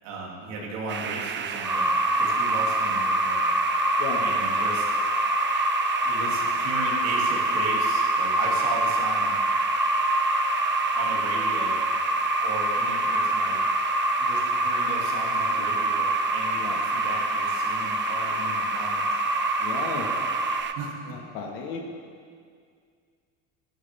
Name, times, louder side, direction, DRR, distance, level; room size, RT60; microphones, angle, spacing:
voice 1, 0.0-3.5 4.2-4.9 6.0-9.4 10.9-11.8 12.4-13.6 14.2-19.0 20.7-20.9, right 3 dB, 90° right, -3 dB, 3.3 m, -35 dB
sound 1, 0.9-20.7, right 7 dB, 30° right, 0.7 m, -33 dB
sound 2, 1.6-20.6, right 1 dB, 5° right, 1.5 m, -25 dB
voice 2, 19.6-20.1 21.1-21.8, left 5 dB, 75° left, 0 dB, 2.2 m, -34 dB
17.0 x 11.5 x 3.7 m, 2.1 s
supercardioid pair, 105°, 36 cm